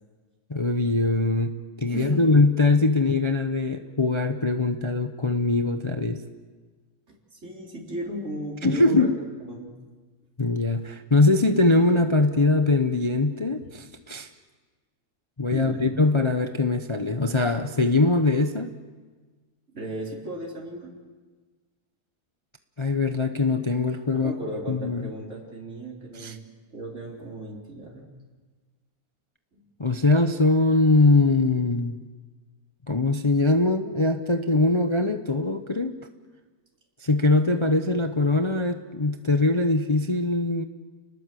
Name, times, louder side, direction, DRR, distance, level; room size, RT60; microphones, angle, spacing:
voice 1, 0.5-6.2 8.6-9.1 10.4-14.3 15.4-18.7 22.8-24.4 24.7-25.1 26.1-26.4 29.8-32.0 32.9-36.0 37.0-40.6, left 2 dB, 25° left, 7 dB, 0.8 m, -22 dB
voice 2, 1.9-2.2 7.3-9.1 9.5-9.7 13.6-13.8 15.5-15.9 19.7-20.9 24.1-26.4 26.7-28.0, right 2 dB, 45° right, -2 dB, 4.3 m, -35 dB
30.0 x 20.0 x 7.7 m, 1.4 s
omnidirectional pair, 1.6 m